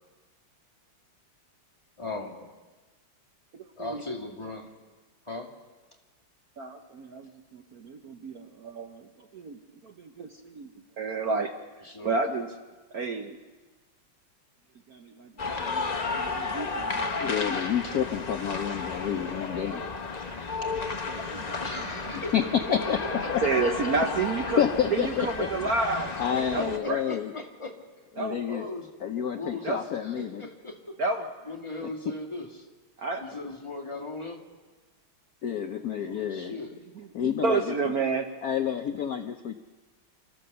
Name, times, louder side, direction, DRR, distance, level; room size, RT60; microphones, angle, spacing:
voice 1, 2.0-2.5 3.8-4.7 5.2-5.5 11.8-12.1 17.8-18.0 21.6-22.9 23.2-23.9 24.4-24.5 26.0-27.8 28.5-31.0 31.5-32.7 33.2-34.4 36.0-36.7, left 2 dB, 15° left, -1 dB, 2.2 m, -38 dB
voice 2, 3.5-4.0 6.6-10.7 11.0-11.5 12.0-12.5 12.9-13.4 14.9-17.3 20.6-22.2 23.4-24.6 24.9-26.2 26.5-27.0 28.2-28.4 29.6-29.8 31.0-31.3 33.0-33.3 36.0-36.6 36.9-38.3, right 4 dB, 55° right, 5 dB, 1.2 m, -31 dB
sound 1, 15.4-26.8, left 4 dB, 35° left, 0.6 m, -33 dB
voice 3, 17.2-19.8 22.3-22.4 22.7-23.0 23.3-23.4 24.6-25.5 26.2-27.3 28.2-28.7 29.0-30.5 31.8-31.9 35.4-36.6 37.1-37.9 38.4-39.5, left 8 dB, 60° left, 6 dB, 1.0 m, -29 dB
27.5 x 14.0 x 6.9 m, 1.3 s
omnidirectional pair, 2.3 m